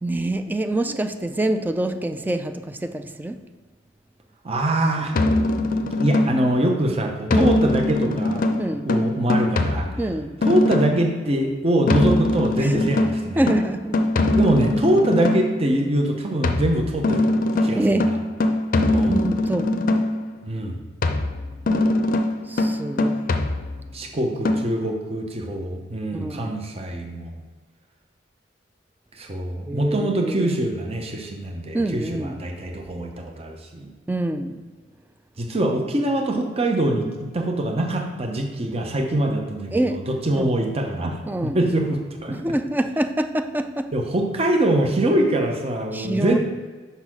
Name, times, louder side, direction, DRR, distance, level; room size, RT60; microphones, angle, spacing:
voice 1, 0.0-3.4 7.3-7.5 8.6-8.9 10.0-10.4 12.6-12.7 13.4-14.0 17.8-18.1 19.1-19.7 22.5-23.3 26.1-26.5 29.7-30.5 31.7-32.4 34.1-34.7 39.7-40.0 40.4-40.5 41.3-41.6 42.3-43.9 45.9-46.4, right 1 dB, 10° right, 8 dB, 0.3 m, -26 dB
voice 2, 4.4-5.1 6.0-8.4 8.9-9.9 10.4-13.5 14.4-17.3 17.6-17.8 18.1-18.2 18.9-19.2 20.4-20.8 23.9-27.4 29.1-33.9 35.4-41.2 41.5-42.4 43.9-46.4, right 1 dB, 30° right, 2 dB, 0.7 m, -23 dB
sound 1, 5.1-6.6 7.3-11.1 11.9-15.6 16.4-20.3 21.0-24.0 24.4-24.6, left 2 dB, 45° left, 0.5 m, -22 dB
5.4 x 4.0 x 6.0 m, 1.4 s
head